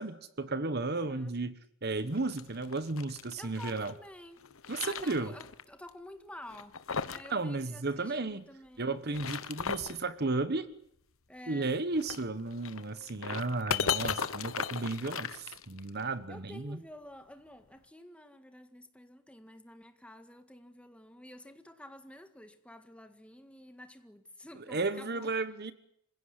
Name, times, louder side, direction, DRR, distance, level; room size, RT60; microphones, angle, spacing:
voice 1, 0.0-1.5 1.8-3.9 4.7-5.3 7.3-8.4 8.8-10.7 11.5-16.8 24.5-25.7, right 3 dB, 50° right, 1.2 m, -34 dB
sound 1, 2.1-3.9 4.4-5.6 5.9-6.0 6.5-7.3 7.6-7.7 8.9-10.0 11.9-16.0, left 6 dB, 70° left, 1.1 m, -36 dB
voice 2, 3.4-9.0 11.3-11.8 16.3-25.3, left 1 dB, 5° left, 1.8 m, -50 dB
27.0 x 16.5 x 9.9 m
head